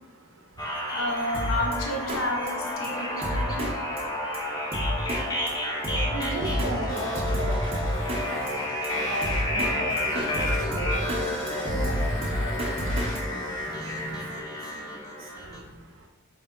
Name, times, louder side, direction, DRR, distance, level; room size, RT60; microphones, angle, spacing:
voice 1, 0.0-1.0 3.0-16.1, right 1 dB, 65° right, 1 dB, 0.5 m, -40 dB
sound 1, 0.6-15.6, left 1 dB, 15° left, 0.4 m, -31 dB
voice 2, 0.9-3.7, left 1 dB, 80° left, 0 dB, 0.7 m, -31 dB
Drum kit, 1.3-1.8 2.1-2.2 2.5-2.6 2.8-2.9 3.2-3.7 4.0-4.1 4.3-4.4 4.7-5.2 5.5-5.6 5.8-6.7 7.0-8.2 8.5-8.6 8.8-8.9 9.2-9.7 10.0-11.2 11.5-13.2, equal, 25° right, 0.6 m, -29 dB
sound 2, 6.4-14.4, left 1 dB, 60° left, 1.3 m, -40 dB
4.4 x 2.7 x 3.7 m, 1.2 s
head